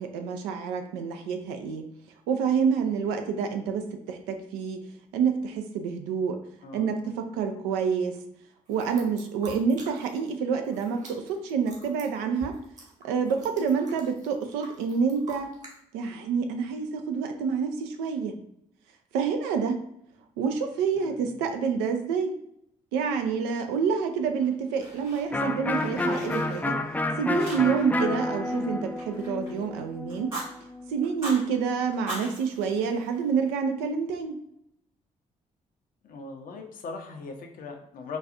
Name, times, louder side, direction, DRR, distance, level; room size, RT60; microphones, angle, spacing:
voice 1, 0.0-1.8 2.3-4.8 5.1-6.4 6.7-8.2 8.7-12.6 13.0-15.5 15.9-18.4 19.1-19.8 20.4-22.3 22.9-26.8 27.2-30.3 30.9-34.4, right 6 dB, 75° right, 6 dB, 0.4 m, -28 dB
voice 2, 6.6-6.9 21.0-21.4 36.0-38.2, left 4 dB, 55° left, 4 dB, 0.6 m, -40 dB
sound 1, 8.7-10.3 10.6-15.7, right 2 dB, 45° right, 1.2 m, -47 dB
Fire, 24.4-25.5 25.8-27.0 27.4-28.0 28.2-29.6 30.1-30.5 31.0-31.4 31.9-33.5, right 2 dB, 90° right, 1.3 m, -40 dB
Electric guitar, 25.3-30.9, left 2 dB, 10° left, 0.4 m, -30 dB
3.9 x 2.3 x 2.5 m, 0.77 s
figure-of-eight pair, 40°, 17 cm